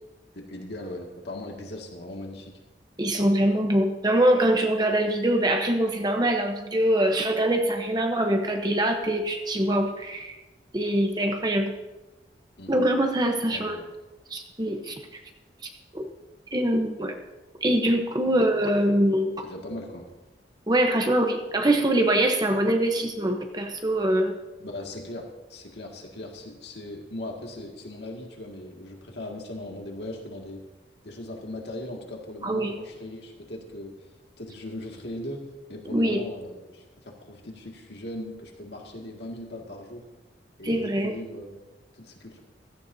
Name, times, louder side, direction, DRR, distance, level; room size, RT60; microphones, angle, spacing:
voice 1, 0.3-2.5 12.6-12.7 13.5-13.9 18.2-18.5 19.4-20.1 24.6-30.6 31.0-33.9 34.4-40.0 40.6-42.4, left 1 dB, 65° left, 0 dB, 2.1 m, -39 dB
voice 2, 3.0-10.3 10.7-11.7 12.7-13.8 14.3-15.2 15.9-16.0 16.5-17.2 17.6-19.4 20.7-24.3 32.4-32.7 35.9-36.2 40.6-41.1, right 1 dB, 20° right, 3 dB, 0.9 m, -23 dB
16.0 x 14.5 x 2.7 m, 1.1 s
head